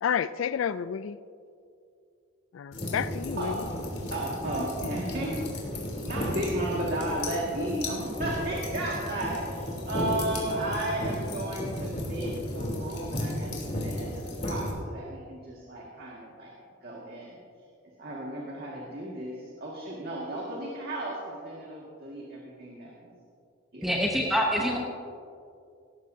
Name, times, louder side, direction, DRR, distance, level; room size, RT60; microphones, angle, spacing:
voice 1, 0.0-1.2 2.5-3.7, left 8 dB, 75° left, 15 dB, 0.3 m, -30 dB
sound 1, 2.7-14.7, left 1 dB, 35° left, 3.2 m, -34 dB
voice 2, 4.1-5.4 6.0-16.5 16.8-17.4 18.0-23.2 23.7-23.9 24.7-24.8, right 1 dB, 50° right, -4 dB, 1.9 m, -34 dB
voice 3, 23.8-24.8, equal, ahead, -1 dB, 0.9 m, -25 dB
18.0 x 14.0 x 2.7 m, 2.4 s
head